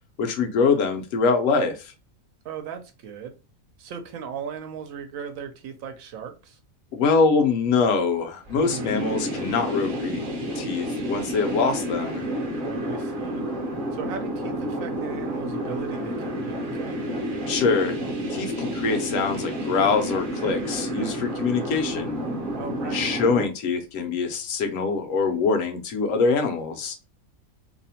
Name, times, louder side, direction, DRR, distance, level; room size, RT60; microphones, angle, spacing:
voice 1, 0.2-1.9 6.9-10.3 10.6-12.2 17.5-18.0 18.3-22.2 22.9-27.0, left 4 dB, 70° left, 0.9 m, -24 dB
voice 2, 2.4-3.3 3.8-6.6 8.6-9.0 12.6-13.4 13.9-17.0 22.5-23.1, right 7 dB, 75° right, 0.9 m, -37 dB
sound 1, 8.5-23.4, equal, 50° right, 0.7 m, -30 dB
2.7 x 2.0 x 2.7 m
omnidirectional pair, 1.5 m